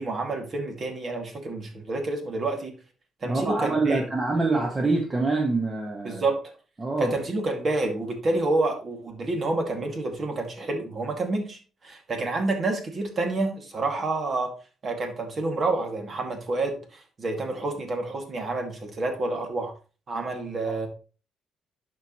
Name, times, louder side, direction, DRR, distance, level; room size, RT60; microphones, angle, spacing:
voice 1, 0.0-2.7 3.2-4.0 6.0-6.4 7.0-14.5 14.8-19.7 20.1-20.9, right 2 dB, 45° right, 3 dB, 2.3 m, -28 dB
voice 2, 3.2-6.2 6.8-7.1 20.7-20.8, right 3 dB, 25° right, 0 dB, 1.4 m, -25 dB
11.0 x 4.8 x 3.1 m, 0.35 s
cardioid pair, 90°, 0 cm